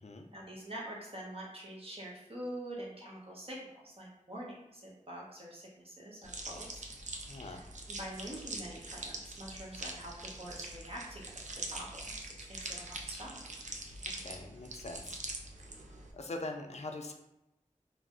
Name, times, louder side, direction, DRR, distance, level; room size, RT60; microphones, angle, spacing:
voice 1, 0.3-6.9 7.4-10.1 10.4-12.2 12.5-13.4, right 1 dB, 45° right, -4 dB, 0.8 m, -45 dB
sound 1, 6.2-16.1, right 2 dB, 60° right, 0.4 m, -44 dB
voice 2, 7.3-7.6 14.0-15.2 16.1-17.1, left 2 dB, 55° left, 4 dB, 0.4 m, -42 dB
2.4 x 2.0 x 3.5 m, 0.89 s
wide cardioid pair, 45°, 14 cm